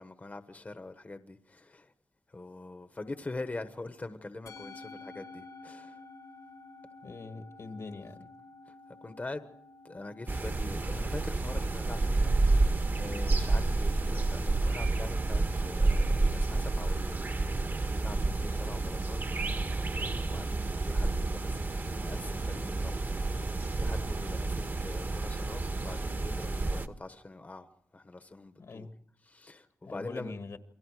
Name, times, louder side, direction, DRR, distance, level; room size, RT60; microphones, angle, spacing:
voice 1, 0.0-1.9 2.3-6.0 8.7-8.8 9.0-9.5 9.8-17.5 17.8-28.9 29.3-30.3, left 2 dB, 30° left, 1.1 m, -44 dB
Musical instrument, 4.5-23.0, left 3 dB, 85° left, 3.1 m, -54 dB
voice 2, 7.0-8.3 28.6-29.0 29.8-30.6, left 3 dB, 65° left, 1.8 m, -43 dB
sound 1, 10.3-26.9, right 2 dB, 40° right, 1.3 m, -30 dB
28.5 x 23.5 x 4.8 m
wide cardioid pair, 100°, 5 cm